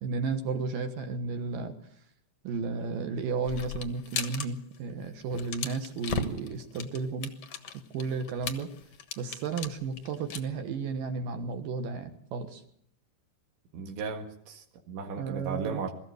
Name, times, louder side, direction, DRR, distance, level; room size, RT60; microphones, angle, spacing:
voice 1, 0.0-1.7 2.4-7.3 7.9-8.7 9.2-12.6 15.2-15.8, right 4 dB, 65° right, 7 dB, 2.6 m, -33 dB
sound 1, 3.5-4.5 4.7-4.9 5.2-10.4, left 7 dB, 70° left, 1.4 m, -36 dB
voice 2, 13.7-15.9, right 5 dB, 85° right, 2 dB, 4.2 m, -36 dB
23.0 x 14.0 x 7.9 m, 0.71 s
omnidirectional pair, 5.1 m